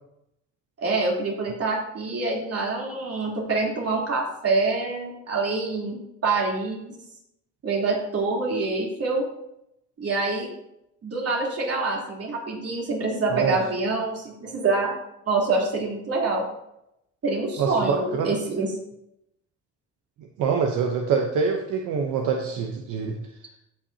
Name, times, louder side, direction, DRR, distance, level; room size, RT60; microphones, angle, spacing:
voice 1, 0.8-6.9 7.6-9.2 10.0-10.5 11.0-14.9 15.3-16.4 17.2-18.7, right 3 dB, 50° right, -3 dB, 3.3 m, -26 dB
voice 2, 17.6-18.3 20.4-23.2, right 5 dB, 85° right, 2 dB, 0.9 m, -25 dB
16.0 x 5.7 x 2.8 m, 0.81 s
cardioid pair, 90°, 30 cm